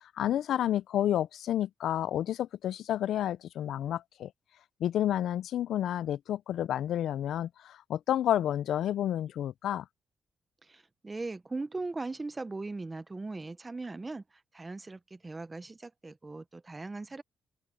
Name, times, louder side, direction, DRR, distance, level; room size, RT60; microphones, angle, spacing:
voice 1, 0.2-4.3 4.8-9.9, left 11 dB, 80° left, 0.3 m, -30 dB
voice 2, 10.7-14.2 14.5-17.2, right 3 dB, 15° right, 0.6 m, -39 dB
open air
wide cardioid pair, 165°, 0 cm